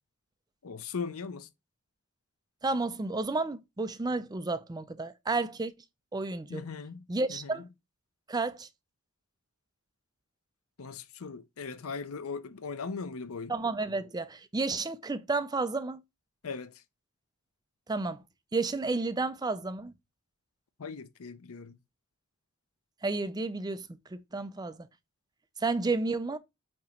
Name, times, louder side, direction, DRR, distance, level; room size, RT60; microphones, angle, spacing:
voice 1, 0.6-1.5 6.5-7.0 7.3-7.5 10.8-13.5 16.4-16.7 20.8-21.8, left 5 dB, 75° left, 0.6 m, -39 dB
voice 2, 2.6-5.7 6.1-6.6 7.1-7.6 8.3-8.7 13.5-16.0 17.9-18.2 18.5-19.9 23.0-23.8 24.1-24.8 25.6-26.4, right 3 dB, 20° right, 0.4 m, -31 dB
8.6 x 3.0 x 4.3 m
head